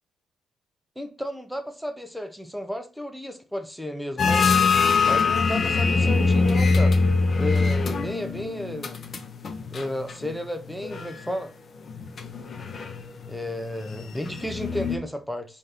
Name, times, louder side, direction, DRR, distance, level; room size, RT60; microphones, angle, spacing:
voice 1, 1.0-4.5 5.1-7.0 7.3-9.0 9.7-11.5 13.3-15.6, equal, ahead, 0.5 m, -33 dB
sound 1, 4.2-10.4 10.7-11.3 11.9-15.0, left 4 dB, 45° left, 0.6 m, -23 dB
4.0 x 2.5 x 3.3 m
cardioid pair, 90°, 0 cm